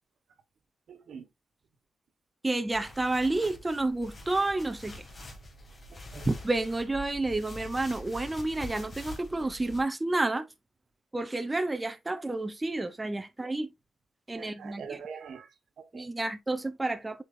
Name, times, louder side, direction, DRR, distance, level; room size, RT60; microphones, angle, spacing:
voice 1, 0.9-1.3 5.9-6.3 14.3-15.5 15.8-16.1, right 6 dB, 85° right, 1.4 m, -43 dB
voice 2, 2.4-5.0 6.2-10.5 11.1-13.7 14.3-15.0 15.9-17.2, right 2 dB, 20° right, 0.9 m, -30 dB
sound 1, 2.7-9.8, left 1 dB, 35° left, 2.3 m, -45 dB
8.2 x 5.0 x 2.6 m
wide cardioid pair, 110°, 0 cm